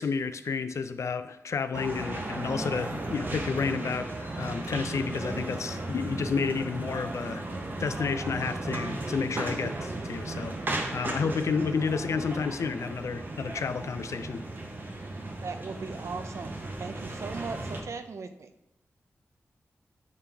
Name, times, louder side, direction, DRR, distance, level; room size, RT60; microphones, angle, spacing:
voice 1, 0.0-7.4 7.8-10.5 10.9-14.5, left 5 dB, 65° left, 11 dB, 0.3 m, -31 dB
sound 1, 1.7-17.8, right 2 dB, 40° right, 0.8 m, -35 dB
voice 2, 15.4-18.5, right 4 dB, 65° right, 8 dB, 0.5 m, -38 dB
7.4 x 3.8 x 3.4 m, 0.84 s
wide cardioid pair, 115°, 5 cm